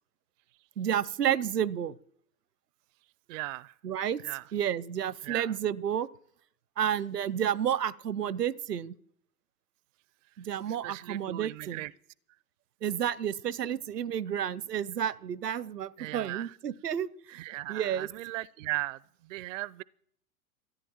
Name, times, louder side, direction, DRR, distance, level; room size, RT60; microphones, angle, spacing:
voice 1, 0.8-2.0 3.8-4.2 4.5-6.1 6.8-9.0 10.4-11.8 12.8-17.4 17.7-18.1, right 9 dB, 85° right, 0.8 m, -31 dB
voice 2, 3.3-3.7 4.2-4.4 5.2-5.5 10.7-11.9 16.0-16.6 17.3-19.8, right 19 dB, 55° right, 0.5 m, -38 dB
14.0 x 10.0 x 8.7 m
hypercardioid pair, 105°, 47 cm